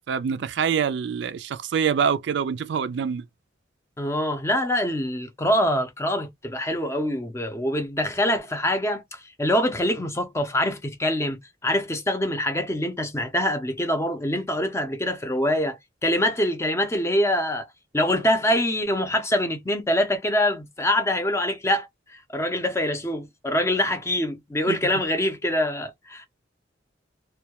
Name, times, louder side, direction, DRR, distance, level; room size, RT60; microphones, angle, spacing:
voice 1, 0.1-3.3 24.7-24.8, right 7 dB, 65° right, 0.3 m, -25 dB
voice 2, 4.0-17.6 17.9-26.3, left 1 dB, 15° left, 0.5 m, -24 dB
2.2 x 2.1 x 2.8 m
head